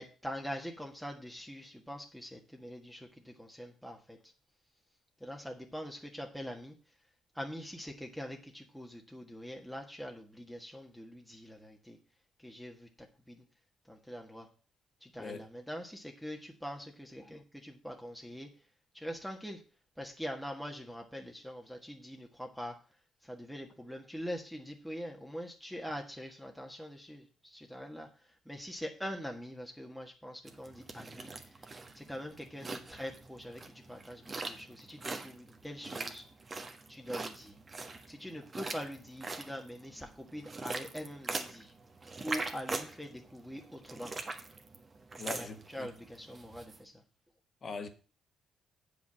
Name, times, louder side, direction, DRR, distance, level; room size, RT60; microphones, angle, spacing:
voice 1, 0.0-4.2 5.2-6.7 7.3-12.0 12.4-12.9 13.3-13.4 13.9-14.5 15.0-18.5 18.9-19.6 20.0-22.7 23.2-31.6 31.9-33.6 33.9-36.2 36.9-37.6 38.1-41.7 42.2-44.1 45.3-47.0, equal, ahead, 1.5 m, -43 dB
sound 1, 30.5-46.8, right 3 dB, 30° right, 1.4 m, -42 dB
voice 2, 45.2-45.9 47.6-47.9, left 4 dB, 45° left, 1.5 m, -41 dB
7.9 x 5.3 x 7.4 m
cardioid pair, 90°, 0 cm